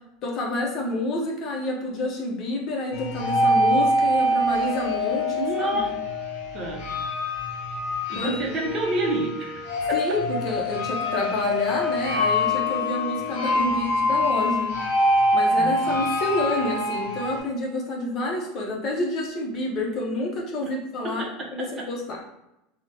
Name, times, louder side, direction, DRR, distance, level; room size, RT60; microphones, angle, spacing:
voice 1, 0.2-5.3 5.6-5.9 8.1-8.4 9.9-14.8 15.3-21.2 21.6-22.2, left 2 dB, 40° left, 0 dB, 0.6 m, -28 dB
sound 1, 2.9-17.4, left 1 dB, 90° left, 0.5 m, -25 dB
voice 2, 5.2-5.9 6.5-6.9 8.1-10.2 15.6-16.1 20.6-20.7 21.0-21.9, right 1 dB, 35° right, -1 dB, 0.6 m, -29 dB
3.1 x 2.0 x 2.6 m, 0.88 s
supercardioid pair, 140°, 0 cm